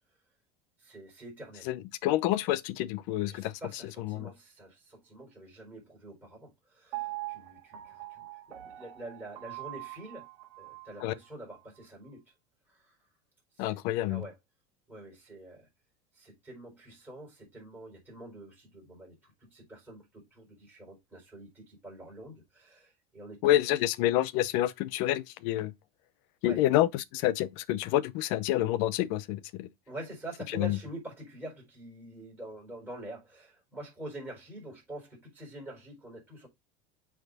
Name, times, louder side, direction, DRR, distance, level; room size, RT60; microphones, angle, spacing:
voice 1, 0.8-1.7 3.3-10.2 10.6-12.2 12.7-13.0 13.5-13.6 14.1-14.4 14.9-15.7 16.1-23.6 26.4-26.6 29.9-36.5, right 1 dB, 10° right, 4.4 m, -46 dB
voice 2, 1.7-3.6 4.0-4.3 11.0-11.1 13.6-14.2 23.4-25.7 26.4-29.7 30.5-30.8, left 14 dB, 50° left, 0.6 m, -28 dB
Piano, 6.9-11.0 11.5-11.6, right 18 dB, 65° right, 1.3 m, -42 dB
8.0 x 3.6 x 4.0 m
cardioid pair, 175°, 18 cm